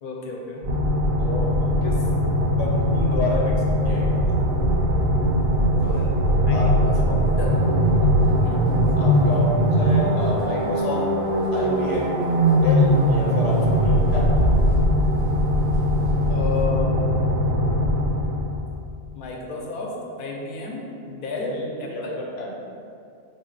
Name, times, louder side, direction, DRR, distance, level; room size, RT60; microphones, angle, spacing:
voice 1, 0.0-0.6 6.4-7.6 8.3-8.8 10.2-10.3 16.3-17.0 19.1-21.5 22.0-22.2, left 4 dB, 60° left, -1 dB, 0.6 m, -32 dB
sound 1, 0.6-18.7, equal, 55° right, 0.5 m, -20 dB
voice 2, 1.2-2.0 2.6-4.4 6.5-6.8 8.0-8.2 9.0-11.1 11.5-12.2 12.6-14.5 21.4-22.8, left 2 dB, 85° left, -3 dB, 0.9 m, -30 dB
sound 2, 1.6-1.7 1.9-2.0 2.4-2.5 3.1-3.3 3.8-3.9 4.4-4.5 4.8-4.9 5.3-5.4 5.6-16.6, equal, 10° left, 0.5 m, -31 dB
3.6 x 2.0 x 3.8 m, 2.4 s
omnidirectional pair, 1.2 m